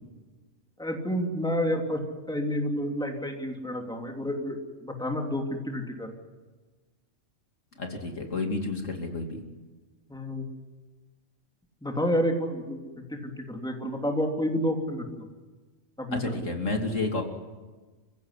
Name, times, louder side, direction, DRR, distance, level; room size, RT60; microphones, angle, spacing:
voice 1, 0.8-2.0 2.3-6.1 10.1-10.5 11.8-12.8 13.1-15.0 16.0-16.3, equal, 5° left, 2 dB, 2.9 m, -29 dB
voice 2, 7.8-9.4 16.1-17.2, left 3 dB, 70° left, 3 dB, 3.1 m, -30 dB
29.0 x 16.0 x 9.9 m, 1.3 s
omnidirectional pair, 1.4 m